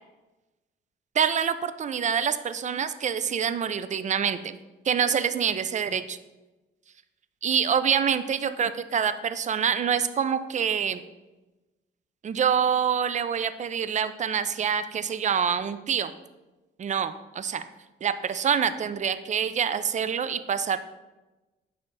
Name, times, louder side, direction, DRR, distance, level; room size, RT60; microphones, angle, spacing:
voice 1, 1.2-4.6 4.8-6.2 7.4-11.0 12.2-16.1 16.8-17.6 18.0-20.9, right 7 dB, 35° right, 12 dB, 0.4 m, -26 dB
9.2 x 3.4 x 4.0 m, 1.1 s
cardioid pair, 90°, 20 cm